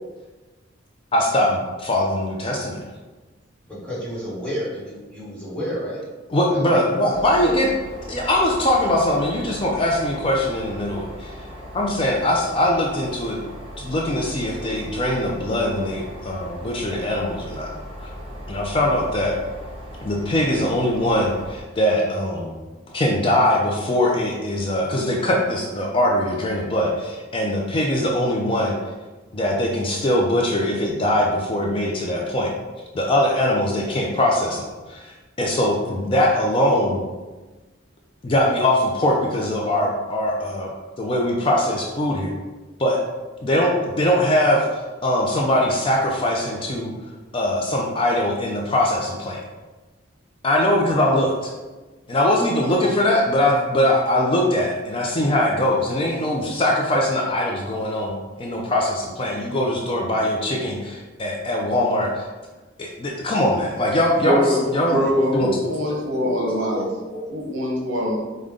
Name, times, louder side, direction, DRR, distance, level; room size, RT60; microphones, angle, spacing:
voice 1, 1.1-2.8 6.3-7.7 8.1-11.5 11.7-13.4 13.8-17.7 18.5-19.3 20.0-22.6 22.9-28.8 29.3-32.5 32.9-37.0 38.2-40.7 41.0-42.3 42.8-43.0 43.4-46.9 47.3-49.4 50.4-51.5 52.1-62.3 62.8-65.0 65.3-65.5 65.9-66.0, left 1 dB, 25° left, -1 dB, 0.4 m, -21 dB
voice 2, 3.7-6.0 6.5-7.6 66.0-67.6, equal, 5° left, -8 dB, 1.2 m, -31 dB
sound 1, 7.1-21.6, equal, 30° right, 0.8 m, -38 dB
voice 3, 64.2-66.8 67.3-68.2, left 1 dB, 70° right, -1 dB, 0.9 m, -23 dB
5.0 x 2.2 x 3.6 m, 1.2 s
head